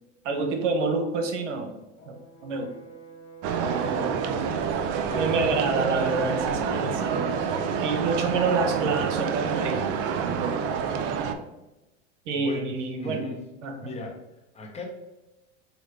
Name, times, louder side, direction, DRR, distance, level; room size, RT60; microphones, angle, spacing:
voice 1, 0.2-1.8 2.1-2.2 2.4-2.7 3.6-4.6 5.2-7.4 7.8-9.8 10.2-10.7 12.3-13.3 13.6-13.8, right 3 dB, 80° right, 4 dB, 0.8 m, -28 dB
Brass instrument, 2.0-6.2, right 6 dB, 45° left, 1.1 m, -45 dB
sound 1, 3.4-11.3, right 6 dB, 45° right, 0.5 m, -27 dB
voice 2, 12.3-13.5 13.8-14.2 14.5-14.8, left 2 dB, 20° left, 0 dB, 0.8 m, -37 dB
4.7 x 2.3 x 3.3 m, 1.0 s
hypercardioid pair, 105°, 36 cm